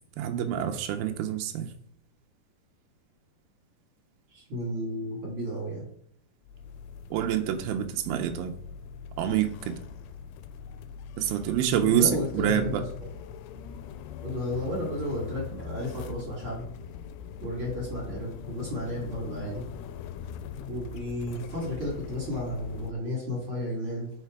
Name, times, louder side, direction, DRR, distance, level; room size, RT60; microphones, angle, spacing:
voice 1, 0.2-1.7 7.1-8.5 9.2-9.8 11.2-12.8, right 10 dB, 85° right, 5 dB, 2.1 m, -27 dB
voice 2, 4.3-5.9 11.8-12.8 14.2-16.6 17.4-19.6 20.7-24.1, left 1 dB, 35° right, -5 dB, 2.5 m, -33 dB
sound 1, 6.4-22.9, left 7 dB, 85° left, 2.5 m, -41 dB
6.7 x 4.1 x 4.6 m, 0.66 s
omnidirectional pair, 4.9 m